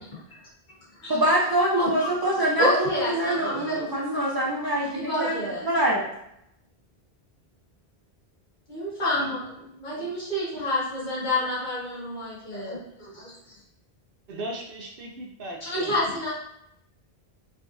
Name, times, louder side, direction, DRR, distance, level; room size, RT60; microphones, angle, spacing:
voice 1, 1.1-5.4 5.6-6.1, right 1 dB, 40° right, -4 dB, 0.3 m, -24 dB
voice 2, 1.8-2.1 2.6-3.8 4.9-5.7 8.7-13.3 15.6-16.3, left 1 dB, 45° left, -7 dB, 1.4 m, -29 dB
voice 3, 14.3-16.3, right 1 dB, 65° right, 2 dB, 0.7 m, -38 dB
3.8 x 3.3 x 2.5 m, 0.80 s
omnidirectional pair, 1.1 m